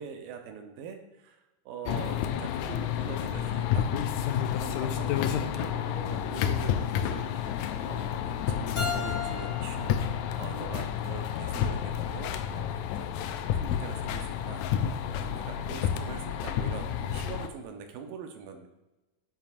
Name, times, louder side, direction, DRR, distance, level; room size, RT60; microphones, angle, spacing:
voice 1, 0.0-4.2 4.5-12.7 13.0-14.7 15.0-18.7, right 6 dB, 85° right, 5 dB, 2.6 m, -44 dB
sound 1, 1.9-17.5, left 9 dB, 85° left, 1.7 m, -30 dB
Keyboard (musical), 8.8-11.6, left 5 dB, 45° left, 1.4 m, -38 dB
9.3 x 8.7 x 2.5 m, 1.0 s
omnidirectional pair, 4.0 m